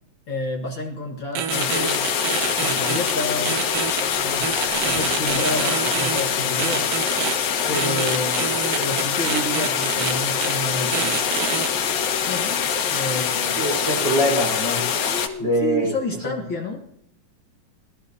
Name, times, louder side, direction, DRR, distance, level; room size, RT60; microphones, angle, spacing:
voice 1, 0.3-2.1 2.6-3.6 4.1-4.6 4.8-7.0 7.7-11.2 12.3-13.6 15.0-16.8, left 1 dB, 50° left, -1 dB, 1.6 m, -30 dB
sound 1, 1.4-3.1 3.5-4.0 4.4-6.2 6.6-7.3 7.7-10.1 10.4-10.5 10.9-11.7, right 8 dB, 80° right, 2.8 m, -27 dB
sound 2, 1.5-15.3, left 7 dB, 90° left, 3.1 m, -24 dB
voice 2, 13.6-14.8 15.4-15.9 16.2-16.4, equal, 30° right, -1 dB, 4.6 m, -23 dB
23.5 x 14.0 x 2.8 m, 0.77 s
omnidirectional pair, 3.9 m